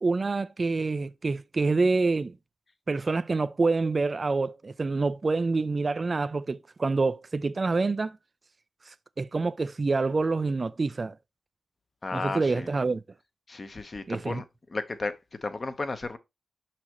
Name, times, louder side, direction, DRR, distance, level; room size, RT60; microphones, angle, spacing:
voice 1, 0.0-2.4 2.9-8.2 8.9-11.2 12.1-13.0 14.1-14.4, right 3 dB, 40° right, 0.4 m, -27 dB
voice 2, 12.0-12.7 13.5-14.4 14.7-16.2, left 3 dB, 40° left, 1.0 m, -33 dB
6.2 x 5.7 x 3.0 m
cardioid pair, 65°, 0 cm